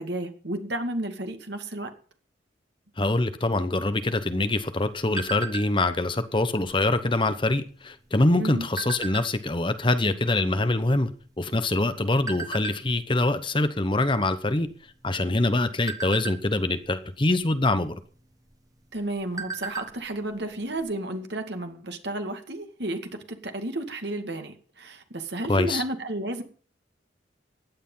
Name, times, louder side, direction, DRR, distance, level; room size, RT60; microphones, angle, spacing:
voice 1, 0.0-1.9 8.4-8.7 18.9-26.4, right 1 dB, 60° right, 2.2 m, -32 dB
voice 2, 3.0-11.1 11.4-14.7 15.0-18.0 25.5-25.8, left 2 dB, 25° left, 0.9 m, -24 dB
sound 1, 4.0-6.0 6.4-6.7 7.0-7.4 8.1-9.6 10.2-10.3 10.5-11.8 12.3-12.8 13.3-13.5 13.8-14.1 14.5-15.0 15.5-16.9 18.0-18.1 18.5-18.6 19.0-20.0 20.3-20.4 20.8-20.9, right 4 dB, 20° right, 1.3 m, -36 dB
16.0 x 10.0 x 5.6 m
head